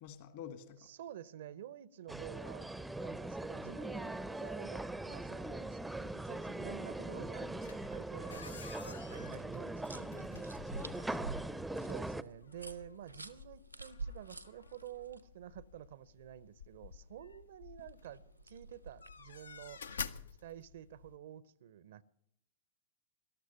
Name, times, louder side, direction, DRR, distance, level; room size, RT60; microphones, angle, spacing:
voice 1, 0.0-0.9 10.6-11.7, left 9 dB, 50° left, 1.7 m, -50 dB
voice 2, 0.8-2.7 3.0-11.0 11.9-19.8 20.4-22.0, right 11 dB, 60° right, 0.6 m, -50 dB
sound 1, 2.1-12.2, right 2 dB, 5° right, 0.5 m, -41 dB
sound 2, 7.5-21.2, left 6 dB, 70° left, 0.6 m, -51 dB
sound 3, 9.3-15.2 17.8-19.3, right 3 dB, 90° right, 0.8 m, -48 dB
19.0 x 13.0 x 5.6 m
figure-of-eight pair, 95°, 0 cm